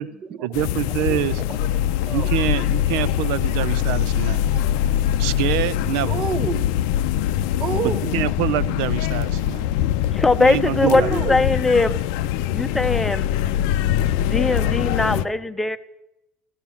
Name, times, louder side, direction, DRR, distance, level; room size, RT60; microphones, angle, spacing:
voice 1, 0.4-1.4 2.1-4.5 5.2-6.2 8.1-9.7 10.4-11.1 13.8-13.9 14.4-14.7, right 13 dB, 80° right, 18 dB, 0.7 m, -26 dB
sound 1, 0.5-15.2, left 11 dB, 85° left, 0.6 m, -23 dB
voice 2, 1.5-2.3 4.5-4.6 6.1-6.9 7.6-8.2 10.1-10.2 10.9-11.4, right 6 dB, 35° right, 13 dB, 0.8 m, -29 dB
voice 3, 10.1-11.9 12.5-13.3 14.1-15.8, left 3 dB, 5° left, 9 dB, 0.7 m, -20 dB
16.0 x 13.0 x 7.1 m, 0.90 s
cardioid pair, 160°, 3 cm